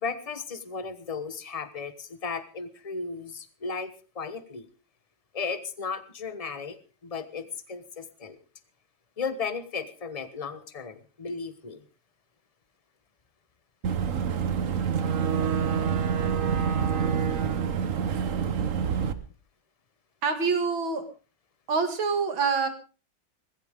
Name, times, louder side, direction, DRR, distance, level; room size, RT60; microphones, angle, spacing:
voice 1, 0.0-4.7 5.3-6.8 7.0-8.4 9.2-11.8, left 5 dB, 25° left, 12 dB, 1.0 m, -35 dB
Boat Water vehicle / Engine, 13.8-19.1, right 7 dB, 45° right, 1.3 m, -26 dB
voice 2, 20.2-21.0 21.7-22.7, right 5 dB, 85° right, 7 dB, 3.0 m, -26 dB
20.0 x 16.0 x 3.7 m, 0.34 s
omnidirectional pair, 2.1 m